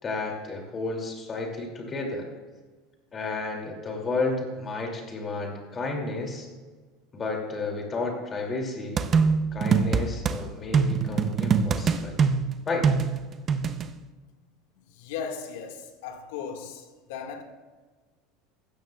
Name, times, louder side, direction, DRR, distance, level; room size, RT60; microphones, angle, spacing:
voice 1, 0.0-2.3 3.1-6.5 7.1-9.0 9.5-12.2 12.7-12.9, left 3 dB, 25° left, 2.7 m, -32 dB
sound 1, 9.0-10.4 10.7-13.9, right 5 dB, 30° right, 0.7 m, -23 dB
voice 2, 15.0-16.8 17.1-17.4, left 6 dB, 80° left, 1.9 m, -36 dB
15.5 x 13.5 x 2.4 m
supercardioid pair, 135°, 0 cm